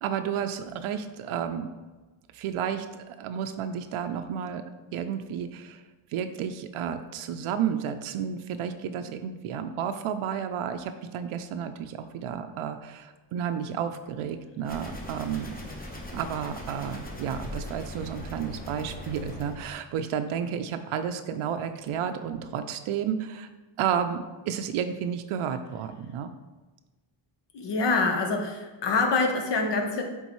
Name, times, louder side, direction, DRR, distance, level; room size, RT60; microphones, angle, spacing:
voice 1, 0.0-1.7 2.3-4.6 4.9-5.8 6.1-15.6 16.1-23.5 23.8-26.3, right 8 dB, 90° right, 8 dB, 0.6 m, -32 dB
sound 1, 14.6-19.7, left 1 dB, 20° left, 1.0 m, -40 dB
voice 2, 27.5-30.0, left 3 dB, 60° left, 3 dB, 1.1 m, -25 dB
8.0 x 3.8 x 3.1 m, 1.2 s
cardioid pair, 110°, 48 cm